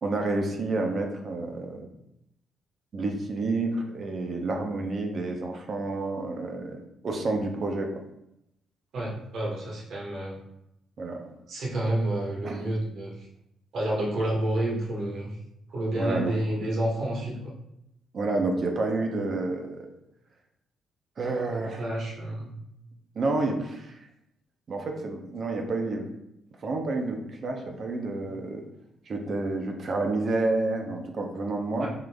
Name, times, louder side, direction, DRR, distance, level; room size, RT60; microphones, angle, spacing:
voice 1, 0.0-1.9 2.9-7.9 11.0-11.3 12.4-12.6 15.9-16.4 18.1-19.8 21.2-21.8 23.1-24.0 24.7-26.1 26.6-28.6 29.1-31.9, right 2 dB, 50° right, 3 dB, 0.6 m, -29 dB
voice 2, 8.9-10.4 11.5-13.3 13.7-15.4 15.7-17.4 21.5-22.5 31.8-31.9, right 1 dB, 65° right, -3 dB, 1.2 m, -29 dB
3.7 x 2.5 x 3.4 m, 0.83 s
cardioid pair, 90°, 0 cm